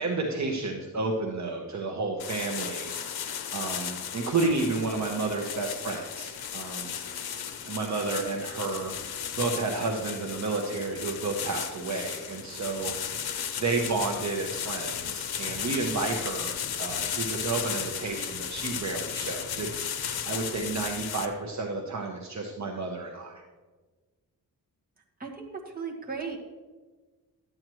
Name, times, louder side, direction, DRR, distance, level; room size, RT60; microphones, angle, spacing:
voice 1, 0.0-6.9 7.7-23.4, right 3 dB, 45° right, 1 dB, 1.0 m, -31 dB
sound 1, 2.2-21.3, left 8 dB, 80° left, 0.8 m, -35 dB
voice 2, 25.2-26.4, right 5 dB, 25° right, -1 dB, 1.7 m, -36 dB
12.0 x 9.0 x 3.1 m, 1.3 s
wide cardioid pair, 125°, 37 cm